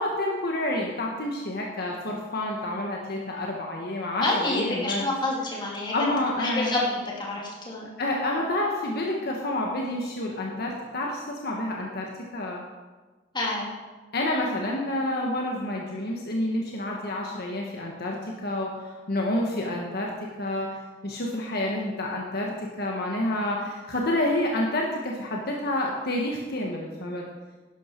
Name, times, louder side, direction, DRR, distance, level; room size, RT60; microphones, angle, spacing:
voice 1, 0.0-5.0 5.9-6.7 8.0-12.6 14.1-20.1 20.4-20.7 21.0-22.5 22.8-27.2, left 1 dB, 55° left, -1 dB, 1.4 m, -29 dB
voice 2, 4.2-5.9 6.4-7.9 13.3-13.7, left 2 dB, 25° left, -3 dB, 2.9 m, -28 dB
11.5 x 11.0 x 4.6 m, 1.3 s
head